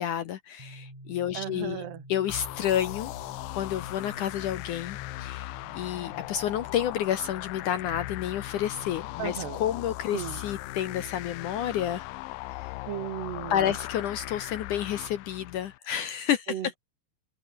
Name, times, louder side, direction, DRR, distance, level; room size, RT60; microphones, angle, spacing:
voice 1, 0.0-3.1 3.5-12.1 12.6-12.8 13.5-16.6, left 10 dB, 70° left, 2.1 m, -30 dB
sound 1, 0.6-14.2, right 1 dB, 10° right, 7.8 m, -51 dB
voice 2, 1.3-2.0 9.2-9.6 10.1-10.4 12.9-13.8 16.5-16.8, right 11 dB, 80° right, 3.9 m, -35 dB
sound 2, 2.3-15.8, left 20 dB, 85° left, 2.0 m, -39 dB
open air
omnidirectional pair, 4.7 m